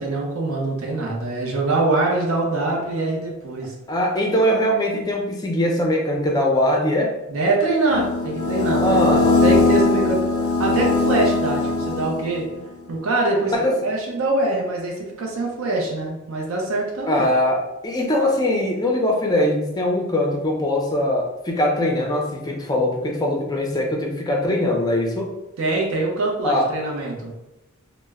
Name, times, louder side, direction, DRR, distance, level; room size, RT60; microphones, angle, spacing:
voice 1, 0.0-3.7 7.3-12.5 12.9-13.5 13.8-17.2 25.6-27.3, right 2 dB, 70° right, -1 dB, 0.5 m, -24 dB
voice 2, 3.9-7.1 8.8-9.4 13.5-13.7 17.1-25.3 26.4-26.7, left 1 dB, 20° left, 0 dB, 0.4 m, -21 dB
sound 1, 7.9-12.5, left 3 dB, 85° left, 0.4 m, -20 dB
2.1 x 2.0 x 3.4 m, 0.97 s
head